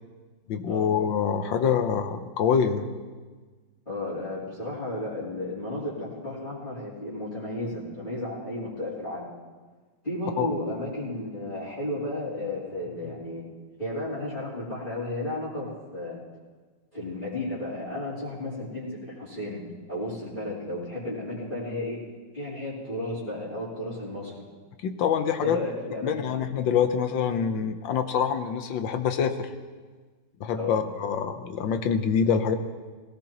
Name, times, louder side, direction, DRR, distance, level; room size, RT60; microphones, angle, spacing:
voice 1, 0.5-2.9 10.4-10.5 24.8-25.6 26.0-29.5 30.4-32.6, left 7 dB, 75° left, 8 dB, 1.6 m, -25 dB
voice 2, 3.8-9.3 10.0-13.4 13.8-16.2 16.9-19.6 19.9-22.0 22.3-24.4 25.4-26.4 30.5-30.8, left 1 dB, 25° left, -11 dB, 3.4 m, -33 dB
20.0 x 17.0 x 3.0 m, 1.4 s
omnidirectional pair, 2.1 m